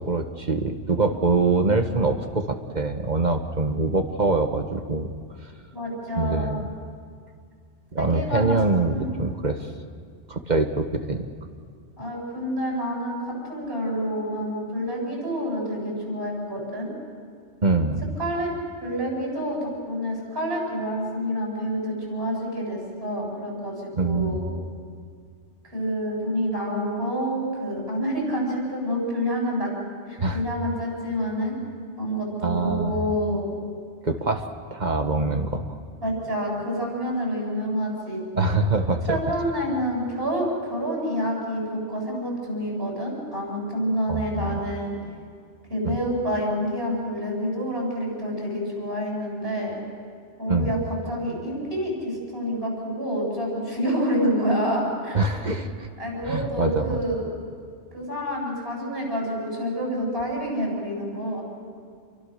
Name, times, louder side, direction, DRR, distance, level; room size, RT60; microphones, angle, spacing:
voice 1, 0.0-5.1 6.2-6.7 7.9-9.7 10.3-11.3 17.6-18.1 24.0-24.4 30.2-30.4 32.4-33.1 34.0-35.6 38.3-39.2 44.1-44.6 45.8-46.0 50.5-50.7 55.1-55.9 56.2-57.0, right 3 dB, 40° right, 6 dB, 1.4 m, -24 dB
voice 2, 5.7-6.5 8.0-8.5 8.9-9.2 12.0-16.9 18.2-18.5 18.8-24.5 25.7-29.7 30.1-31.5 32.0-33.5 36.0-38.2 39.1-45.0 45.7-49.8 50.4-50.8 51.1-55.2 56.0-57.3 57.9-61.4, equal, 60° right, -2 dB, 8.5 m, -28 dB
29.0 x 23.5 x 6.6 m, 2.1 s
omnidirectional pair, 1.2 m